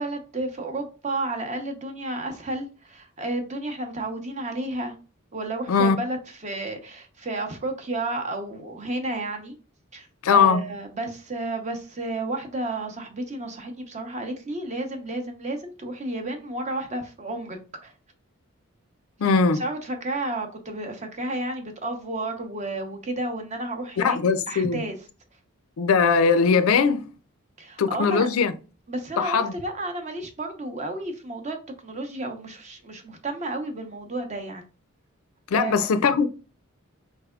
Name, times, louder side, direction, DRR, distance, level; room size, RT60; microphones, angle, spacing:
voice 1, 0.0-4.9 5.3-9.6 9.9-10.1 10.3-17.6 17.8-17.9 19.5-24.2 24.5-25.0 27.6-28.3 28.9-31.6 31.8-34.6 35.5-35.9, right 2 dB, 35° right, 0.7 m, -32 dB
voice 2, 10.2-10.6 19.2-19.6 24.0-24.8 25.8-27.0 27.8-28.5 29.2-29.5 35.5-36.3, left 5 dB, 70° left, 0.4 m, -20 dB
4.3 x 3.3 x 2.3 m
head